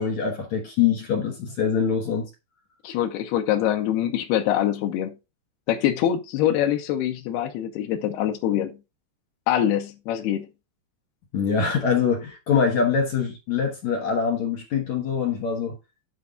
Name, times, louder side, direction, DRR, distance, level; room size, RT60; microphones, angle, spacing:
voice 1, 0.0-2.3 11.3-15.8, left 6 dB, 60° left, 2.1 m, -24 dB
voice 2, 2.8-5.1 5.7-8.8 9.5-10.5, left 11 dB, 80° left, 2.9 m, -24 dB
9.7 x 5.4 x 3.7 m
omnidirectional pair, 4.7 m